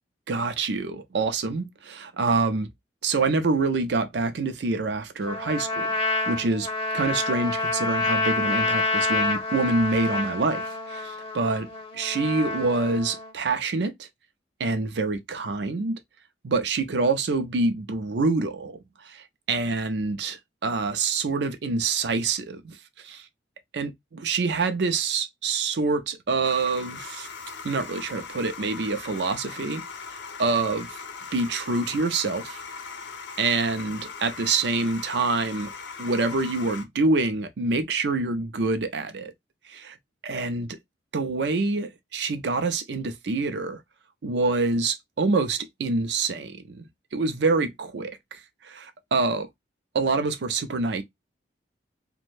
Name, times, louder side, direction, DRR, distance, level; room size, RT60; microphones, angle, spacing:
voice 1, 0.3-2.7 3.0-6.0 6.3-6.7 6.9-11.7 11.9-14.1 14.6-16.0 16.4-23.2 23.7-27.3 27.6-29.8 30.4-31.0 31.3-32.6 33.4-35.7 36.0-39.3 39.7-40.0 40.2-40.7 41.1-43.8 44.2-46.9 47.1-49.5 49.9-51.0, right 3 dB, 65° right, 0.5 m, -26 dB
Trumpet, 5.2-13.3, left 2 dB, 30° left, 0.6 m, -28 dB
sound 1, 26.4-36.8, left 5 dB, 70° left, 0.6 m, -39 dB
2.5 x 2.2 x 3.1 m
head